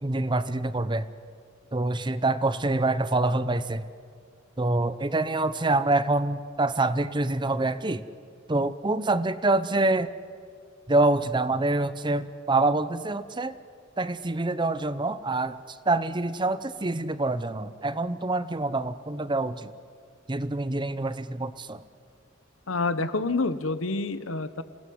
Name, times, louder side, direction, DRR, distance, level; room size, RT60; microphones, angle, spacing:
voice 1, 0.0-1.1 1.7-3.8 4.6-8.0 8.5-10.1 10.9-13.5 14.0-19.7 20.3-21.8, right 2 dB, 25° right, 14 dB, 0.8 m, -26 dB
voice 2, 22.7-24.6, left 3 dB, 75° left, 13 dB, 1.2 m, -27 dB
28.0 x 18.0 x 9.5 m, 2.1 s
head